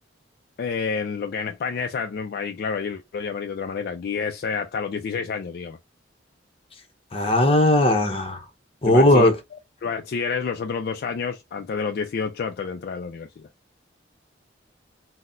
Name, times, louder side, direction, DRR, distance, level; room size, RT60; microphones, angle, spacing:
voice 1, 0.6-5.8 8.8-9.3 9.8-13.5, left 5 dB, 55° left, 0.3 m, -29 dB
voice 2, 7.1-8.4 8.8-9.3, left 1 dB, 30° left, 0.8 m, -17 dB
3.9 x 2.1 x 2.5 m
head